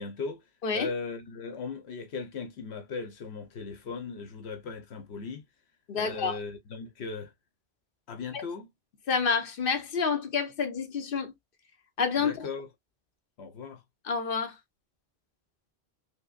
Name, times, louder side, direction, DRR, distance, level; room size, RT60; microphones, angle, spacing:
voice 1, 0.0-0.4 0.7-5.4 5.9-7.3 8.1-8.7 12.2-12.7 13.4-13.8, left 4 dB, 80° left, 1.0 m, -38 dB
voice 2, 5.9-6.4 8.3-8.4 9.1-11.3 12.0-12.5 14.0-14.6, left 5 dB, 60° left, 0.9 m, -28 dB
5.5 x 2.1 x 2.3 m
omnidirectional pair, 1.1 m